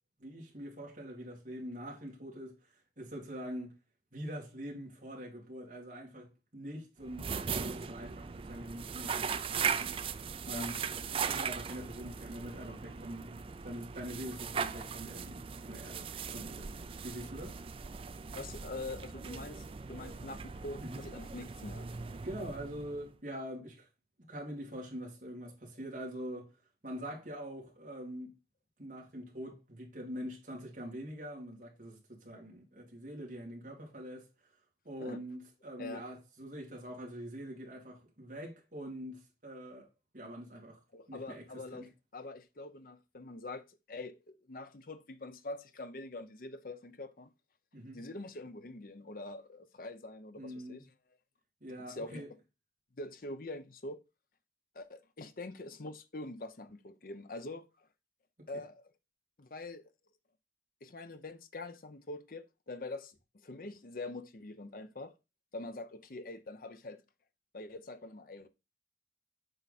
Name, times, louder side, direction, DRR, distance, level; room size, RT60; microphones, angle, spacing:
voice 1, 0.2-3.7 4.1-7.3 7.5-10.0 10.5-10.8 11.2-17.6 20.8-21.0 22.2-23.9 24.3-26.5 26.8-28.3 28.8-34.3 34.8-39.9 40.1-40.8 41.1-41.4 41.7-41.8 47.7-48.0 50.4-50.8 51.6-52.3, equal, 50° right, 2.7 m, -44 dB
sound 1, 7.0-23.2, right 6 dB, 30° right, 0.4 m, -39 dB
voice 2, 18.3-21.9 35.0-35.2 35.8-36.0 40.9-47.3 47.9-50.8 51.8-52.2 53.0-54.0 54.7-57.9 58.5-58.8 59.4-59.9 60.8-65.1 65.5-67.0 67.5-68.5, left 2 dB, 50° left, 0.7 m, -44 dB
7.8 x 4.7 x 4.1 m
head